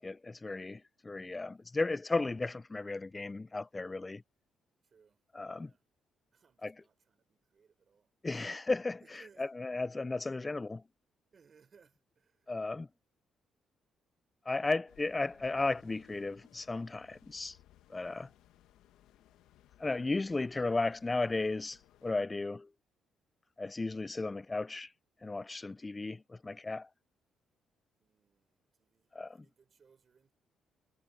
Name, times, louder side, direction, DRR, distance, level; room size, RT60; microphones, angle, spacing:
voice 1, 0.0-4.2 5.3-5.7 6.6-6.7 8.2-9.0 9.4-10.8 12.5-12.9 14.5-17.6 17.9-18.3 19.8-22.7 23.6-24.9 25.2-26.9 29.1-29.4, left 3 dB, 20° left, 0.4 m, -35 dB
voice 2, 4.8-5.2 5.5-5.8 6.3-8.1 9.0-9.5 11.3-12.5 28.0-30.3, right 6 dB, 45° right, 4.4 m, -65 dB
sound 1, 14.9-22.1, left 13 dB, 90° left, 1.4 m, -63 dB
cardioid pair, 90°, 0 cm